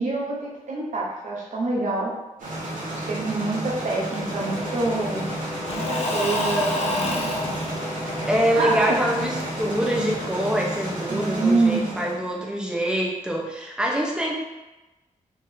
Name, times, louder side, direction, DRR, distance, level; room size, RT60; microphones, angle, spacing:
voice 1, 0.0-2.1 2.9-5.4 5.7-7.3 8.6-9.0 11.1-12.0, right 3 dB, 70° right, -4 dB, 1.0 m, -26 dB
sound 1, 2.4-12.1, right 1 dB, 90° right, 1.4 m, -32 dB
Engine / Mechanisms / Drill, 4.1-10.8, left 1 dB, 50° left, 0.9 m, -30 dB
voice 2, 8.3-14.3, equal, 5° right, -2 dB, 1.0 m, -25 dB
4.5 x 3.1 x 3.8 m, 1.1 s
cardioid pair, 80°, 13 cm